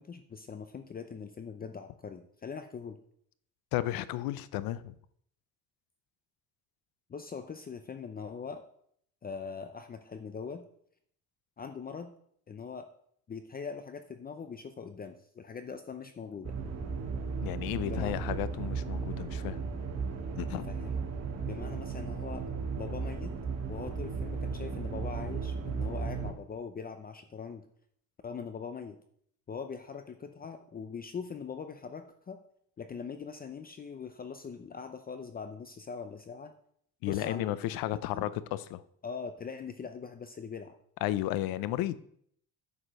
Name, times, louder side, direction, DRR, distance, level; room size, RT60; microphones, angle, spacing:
voice 1, 0.0-3.0 7.1-8.6 9.2-10.6 11.6-12.1 12.5-12.9 13.3-16.6 17.9-18.1 20.5-21.0 21.5-22.5 22.7-23.3 23.7-27.6 28.2-29.0 29.5-32.4 32.8-36.5 37.0-37.6 38.1-38.3 39.0-40.8, left 5 dB, 25° left, 0.6 m, -42 dB
voice 2, 3.7-4.9 17.4-19.6 20.4-20.7 37.0-38.8 41.0-42.0, left 14 dB, 85° left, 0.7 m, -33 dB
sound 1, 16.4-26.3, right 5 dB, 45° right, 1.8 m, -35 dB
9.9 x 5.0 x 6.3 m
cardioid pair, 125°, 34 cm